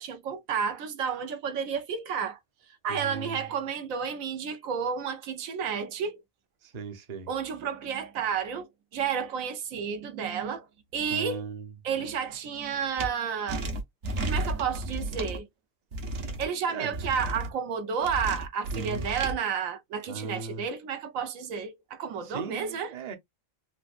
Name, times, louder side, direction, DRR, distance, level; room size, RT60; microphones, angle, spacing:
voice 1, 0.0-2.4 2.8-6.2 7.3-8.7 8.9-10.7 10.9-11.4 11.8-13.6 14.2-15.5 16.4-22.9, right 7 dB, 85° right, 1.1 m, -31 dB
voice 2, 2.9-3.4 6.6-7.3 11.1-11.7 16.7-17.0 18.7-19.1 20.1-20.6 22.2-23.1, right 4 dB, 40° right, 0.7 m, -37 dB
sound 1, 13.0-13.1 13.5-15.4 15.9-16.5 16.9-17.5 18.0-19.3, right 1 dB, 65° right, 1.1 m, -33 dB
4.4 x 2.1 x 2.5 m
omnidirectional pair, 1.4 m